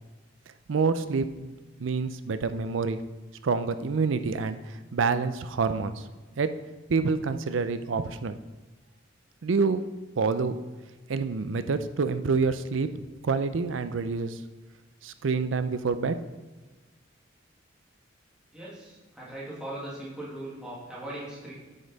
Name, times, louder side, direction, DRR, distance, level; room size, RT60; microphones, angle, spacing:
voice 1, 0.7-1.5 1.8-3.0 3.4-6.0 6.4-6.5 6.9-8.4 9.4-9.8 10.2-10.6 11.1-12.9 13.2-14.4 15.0-16.2, right 4 dB, 85° right, 12 dB, 0.5 m, -27 dB
voice 2, 18.5-21.5, right 1 dB, 5° right, -8 dB, 2.0 m, -39 dB
9.5 x 5.3 x 4.0 m, 1.2 s
head